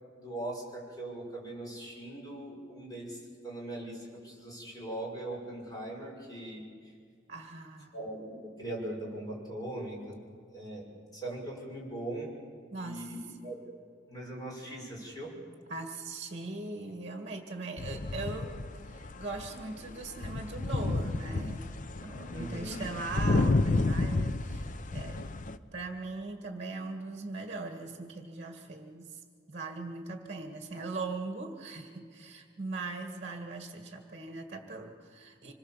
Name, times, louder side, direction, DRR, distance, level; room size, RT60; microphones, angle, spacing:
voice 1, 0.0-3.2 3.4-6.9 7.9-10.1 10.5-10.9 11.1-12.4 12.8-13.6 14.1-15.3 22.3-22.8, right 1 dB, 20° left, -2 dB, 5.8 m, -40 dB
voice 2, 7.3-7.9 12.7-13.1 15.7-18.6 18.8-21.7 22.0-25.2 25.7-29.2 29.5-35.5, right 3 dB, 35° right, 5 dB, 1.9 m, -40 dB
sound 1, 17.8-25.6, left 2 dB, 45° left, 0.7 m, -31 dB
25.5 x 22.0 x 7.4 m, 2.1 s
head